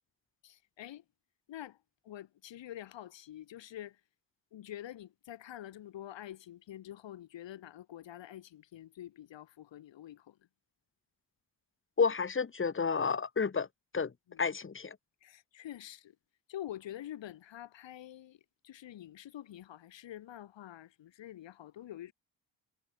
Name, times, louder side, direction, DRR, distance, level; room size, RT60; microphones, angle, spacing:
voice 1, 0.4-1.0 1.5-1.8 2.0-4.0 4.5-10.4 14.3-14.5 15.2-16.2 16.5-18.4 18.6-22.1, left 12 dB, 75° left, 5.4 m, -47 dB
voice 2, 12.0-13.7 13.9-14.1 14.4-15.0, left 5 dB, 25° left, 1.4 m, -30 dB
supercardioid pair, 60°, 44 cm